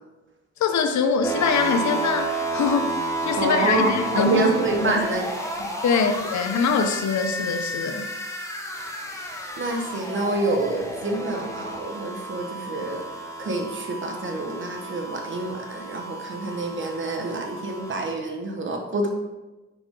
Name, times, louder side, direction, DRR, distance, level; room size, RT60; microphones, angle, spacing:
voice 1, 0.6-2.9 3.3-4.5 4.8-5.0 5.8-8.1, left 5 dB, 70° left, 7 dB, 0.9 m, -23 dB
sound 1, 1.2-18.2, right 1 dB, 10° left, 1.5 m, -32 dB
voice 2, 3.4-5.2 9.6-13.0 13.4-19.1, right 2 dB, 40° right, 3 dB, 1.5 m, -27 dB
7.1 x 6.0 x 3.8 m, 1.1 s
cardioid pair, 90°, 30 cm